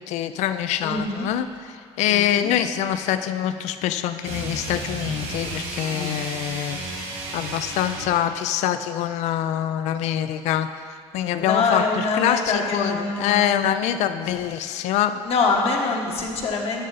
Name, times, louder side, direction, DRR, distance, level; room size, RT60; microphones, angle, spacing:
voice 1, 0.0-10.7 11.1-15.2, left 11 dB, 75° left, 11 dB, 0.4 m, -25 dB
voice 2, 0.8-1.3 2.1-2.5 5.9-6.3 11.4-13.6 15.2-16.9, left 4 dB, 55° left, 0 dB, 1.3 m, -25 dB
sound 1, 4.2-8.2, right 2 dB, 70° right, 2.1 m, -32 dB
13.5 x 5.1 x 4.0 m, 2.2 s
cardioid pair, 115°, 12 cm